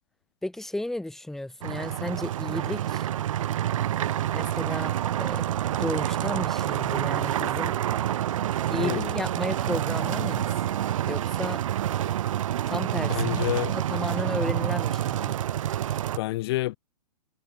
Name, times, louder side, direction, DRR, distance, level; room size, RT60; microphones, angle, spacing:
voice 1, 0.4-3.1 4.3-5.4 5.7-7.8 8.7-10.5 11.1-11.6 12.7-15.3, left 1 dB, ahead, 2.8 m, -33 dB
sound 1, 1.6-16.2, right 11 dB, 55° right, 2.2 m, -28 dB
voice 2, 8.8-9.1 13.1-13.7 16.2-16.8, left 17 dB, 40° left, 1.9 m, -28 dB
hypercardioid pair, 155°, 19 cm